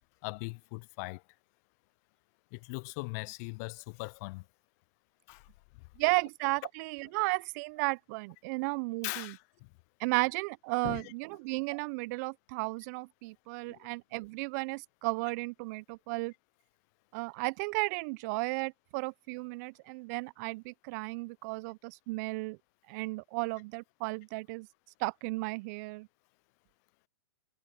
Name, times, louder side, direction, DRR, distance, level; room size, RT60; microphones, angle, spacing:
voice 1, 0.2-1.2 2.5-4.4 5.3-5.5 9.0-9.7 10.8-11.1 13.6-13.9, left 29 dB, 40° left, 0.6 m, -40 dB
voice 2, 6.0-9.4 10.0-16.3 17.1-22.6 22.9-24.7 25.0-26.1, right 28 dB, 40° right, 0.8 m, -34 dB
hypercardioid pair, 115°, 13 cm